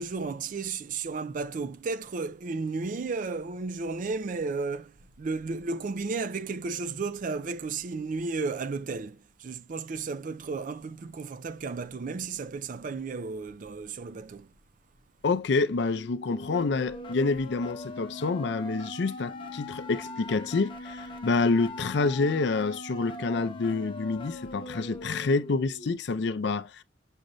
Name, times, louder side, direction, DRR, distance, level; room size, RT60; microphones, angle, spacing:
voice 1, 0.0-4.9 5.2-14.5, right 4 dB, 45° right, 0.4 m, -33 dB
voice 2, 15.2-26.8, left 3 dB, 60° left, 0.4 m, -28 dB
sound 1, 15.9-25.9, left 1 dB, 25° left, 0.8 m, -41 dB
6.4 x 2.5 x 3.0 m
head